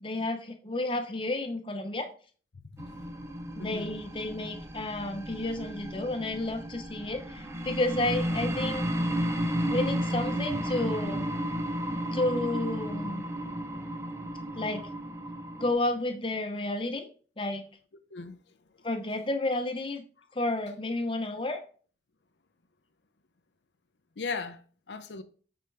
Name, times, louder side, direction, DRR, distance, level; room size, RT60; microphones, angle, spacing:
voice 1, 0.0-2.1 3.6-8.9 9.7-11.3 12.1-13.2 14.5-14.9 15.6-17.1 17.4-17.6 18.8-20.0 20.3-21.6, left 2 dB, 30° left, 0.8 m, -31 dB
voice 2, 2.5-2.9 3.6-4.0 18.1-18.4 24.2-24.6 24.9-25.2, left 4 dB, 85° left, 0.6 m, -37 dB
sound 1, 2.8-15.7, equal, 15° right, 0.6 m, -33 dB
8.5 x 4.4 x 3.4 m
head